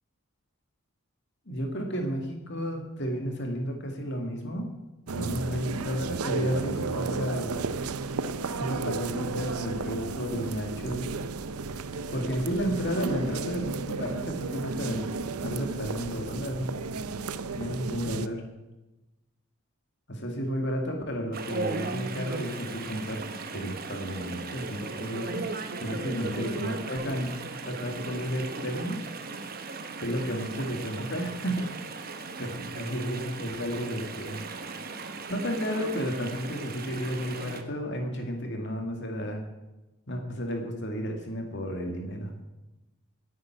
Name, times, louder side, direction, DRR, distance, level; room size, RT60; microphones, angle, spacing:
voice 1, 1.5-4.7 5.1-7.5 8.6-11.1 12.1-15.1 15.4-16.7 17.6-18.4 20.1-25.5 25.8-27.4 27.6-29.0 30.0-31.7 32.4-34.4 35.3-39.4 40.1-42.3, equal, 50° left, 3 dB, 2.2 m, -32 dB
sound 1, 5.1-18.3, right 4 dB, 85° right, 0.7 m, -33 dB
Chatter / Stream, 21.3-37.6, right 3 dB, 40° right, 1.1 m, -37 dB
10.5 x 9.5 x 9.2 m, 1.0 s
head